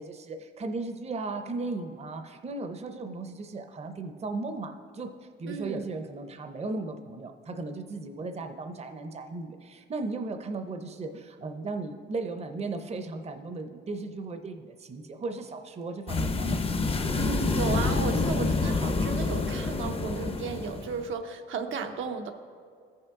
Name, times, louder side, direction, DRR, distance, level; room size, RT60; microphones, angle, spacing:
voice 1, 0.0-16.5, right 3 dB, 30° right, 7 dB, 0.6 m, -36 dB
voice 2, 5.5-5.9 17.2-22.3, right 5 dB, 80° right, 5 dB, 0.7 m, -34 dB
sound 1, 16.1-21.1, left 3 dB, 30° left, 0.6 m, -27 dB
14.0 x 5.7 x 3.6 m, 2.1 s
cardioid pair, 100°, 20 cm